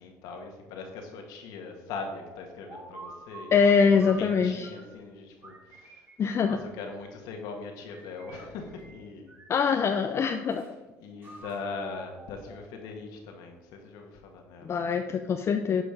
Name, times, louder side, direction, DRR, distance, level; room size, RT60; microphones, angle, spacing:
voice 1, 0.0-6.1 6.4-9.3 9.6-10.2 11.0-14.7, left 4 dB, 80° left, 3 dB, 1.7 m, -41 dB
sound 1, 2.2-5.0 5.4-7.2 7.9-9.0 9.3-10.7 11.2-13.0, right 3 dB, 30° right, 2.7 m, -49 dB
voice 2, 3.5-4.7 6.2-6.6 9.5-10.7 14.6-15.8, left 6 dB, 45° left, 6 dB, 0.6 m, -23 dB
11.0 x 5.0 x 5.0 m, 1.2 s
supercardioid pair, 85°, 7 cm